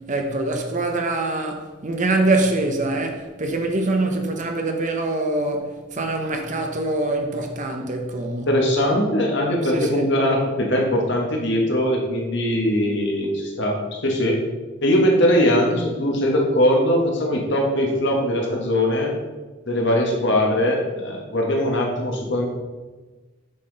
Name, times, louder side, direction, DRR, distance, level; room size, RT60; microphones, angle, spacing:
voice 1, 0.0-8.5 9.6-10.0, right 2 dB, 35° right, 0.7 m, -24 dB
voice 2, 8.5-14.4 14.8-19.1 19.7-22.5, equal, 55° left, 1.3 m, -21 dB
7.6 x 5.8 x 3.9 m
head